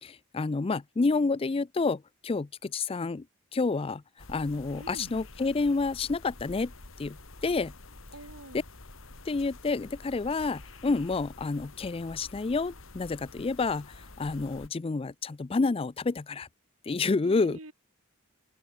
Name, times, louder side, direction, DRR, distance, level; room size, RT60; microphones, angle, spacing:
voice 1, 0.0-3.2 3.5-4.0 4.3-6.7 7.0-7.2 7.4-7.7 9.3-16.5 16.9-17.6, left 3 dB, 25° left, 0.4 m, -29 dB
sound 1, 4.2-14.7, left 2 dB, 65° left, 2.6 m, -48 dB
voice 2, 4.7-5.1 8.1-8.6 17.2-17.7, right 1 dB, 80° right, 4.3 m, -45 dB
open air
head